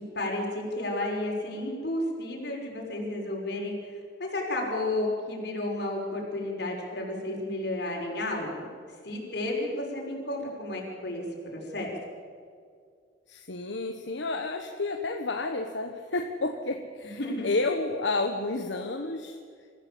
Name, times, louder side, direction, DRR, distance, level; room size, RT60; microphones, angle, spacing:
voice 1, 0.1-3.7 4.2-8.6 9.0-11.2 11.5-11.9 17.2-17.5, left 1 dB, 65° left, -1 dB, 5.9 m, -32 dB
voice 2, 13.3-19.4, left 3 dB, 85° left, 4 dB, 1.3 m, -31 dB
26.0 x 15.0 x 8.6 m, 2.2 s
head